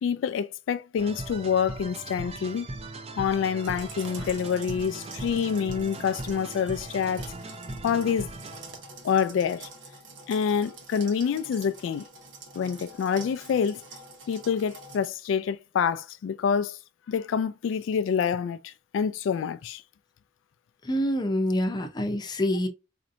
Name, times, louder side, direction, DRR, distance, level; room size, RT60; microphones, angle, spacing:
voice 1, 0.0-2.7 3.1-7.3 7.8-8.3 9.0-9.7 10.3-12.1 12.6-13.8 14.3-16.8 17.1-19.8, left 7 dB, 85° left, 0.3 m, -27 dB
sound 1, 1.0-8.9, right 2 dB, 35° right, 0.5 m, -39 dB
sound 2, 3.6-15.1, right 2 dB, 90° right, 1.0 m, -46 dB
voice 2, 20.8-22.7, equal, 25° left, 0.6 m, -26 dB
4.2 x 2.7 x 2.5 m
head